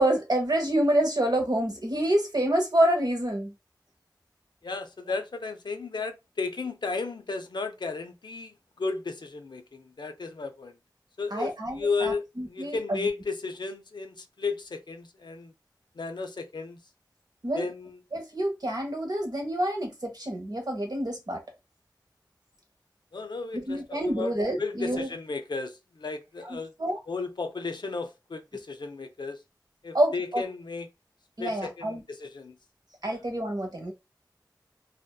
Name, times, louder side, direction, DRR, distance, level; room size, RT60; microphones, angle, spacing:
voice 1, 0.0-3.5 11.3-13.1 17.4-17.7 18.1-21.4 23.5-25.1 26.5-27.0 29.9-30.4 31.4-32.0 33.0-33.9, right 1 dB, 65° right, 0.8 m, -27 dB
voice 2, 4.6-10.7 11.2-15.5 16.0-16.8 17.5-18.0 23.1-26.7 27.1-29.4 29.8-30.9 31.4-32.6 33.1-33.2, left 4 dB, 85° left, 0.4 m, -34 dB
2.6 x 2.2 x 2.2 m
wide cardioid pair, 45°, 7 cm